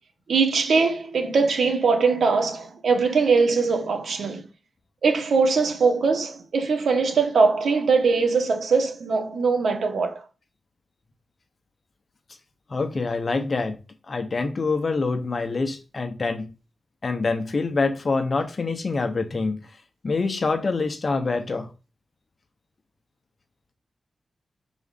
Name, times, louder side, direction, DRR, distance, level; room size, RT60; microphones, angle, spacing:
voice 1, 0.3-4.4 5.0-10.2, right 4 dB, 85° right, 1.4 m, -21 dB
voice 2, 12.7-13.8 14.1-16.5 17.0-19.6 20.0-21.7, left 3 dB, 45° left, 1.0 m, -25 dB
6.1 x 4.1 x 4.1 m
wide cardioid pair, 85°, 0 cm